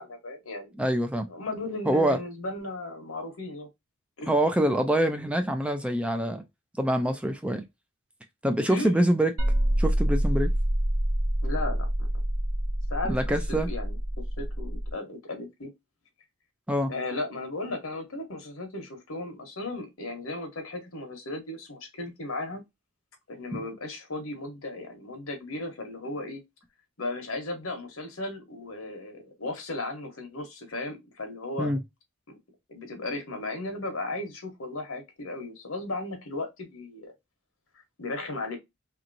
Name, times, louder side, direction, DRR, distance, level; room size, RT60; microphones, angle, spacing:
voice 1, 0.0-0.7 1.3-3.7 4.2-4.3 4.6-4.7 8.7-9.0 11.4-12.1 12.9-13.2 13.7-14.0 14.4-15.7 16.9-22.6 23.3-26.4 27.0-31.7 32.7-37.1 38.0-38.6, left 2 dB, 80° left, 1.1 m, -35 dB
voice 2, 0.8-1.3 1.9-2.2 4.3-6.4 6.8-7.6 8.4-9.3 9.8-10.5 13.1-13.7 16.7-16.9 23.5-23.6 31.6-31.8, right 1 dB, 5° right, 0.3 m, -25 dB
sound 1, 9.4-14.9, right 1 dB, 75° right, 0.9 m, -27 dB
3.0 x 2.9 x 2.5 m
head